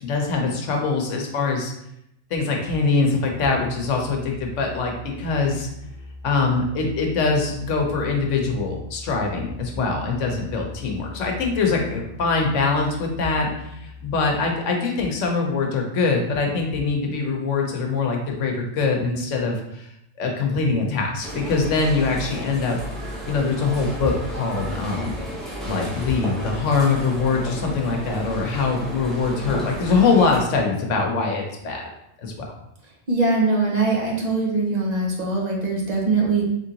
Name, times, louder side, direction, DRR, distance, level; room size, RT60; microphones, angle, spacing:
voice 1, 0.0-1.7 2.3-5.7 6.2-19.9 20.2-22.8 23.3-25.1 25.6-31.9 32.2-32.5, left 4 dB, 75° left, 1 dB, 1.1 m, -23 dB
Musical instrument, 2.6-14.7, left 2 dB, 35° left, 1.0 m, -40 dB
sound 1, 21.2-30.4, equal, ahead, 0.7 m, -33 dB
voice 2, 33.1-36.4, right 3 dB, 35° right, -2 dB, 0.9 m, -22 dB
3.7 x 3.3 x 2.8 m, 0.79 s
omnidirectional pair, 1.3 m